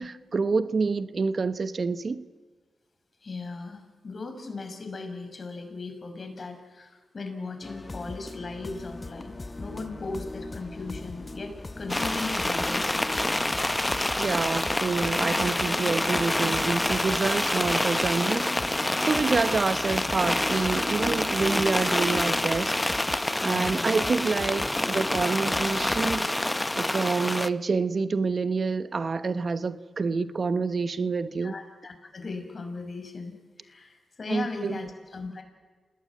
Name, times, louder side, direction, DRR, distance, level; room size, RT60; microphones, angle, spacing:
voice 1, 0.0-2.2 14.1-23.0 23.4-26.4 26.8-31.5 34.3-34.8, right 4 dB, 55° right, 1.1 m, -27 dB
voice 2, 3.2-13.1 23.4-24.0 31.4-35.4, left 3 dB, 50° left, 5.9 m, -38 dB
sound 1, 7.6-26.3, left 2 dB, 35° left, 1.2 m, -39 dB
sound 2, 8.8-18.2, right 1 dB, 15° right, 5.9 m, -52 dB
sound 3, 11.9-27.5, left 1 dB, 15° left, 0.9 m, -27 dB
27.5 x 19.5 x 9.5 m
cardioid pair, 55°, 0 cm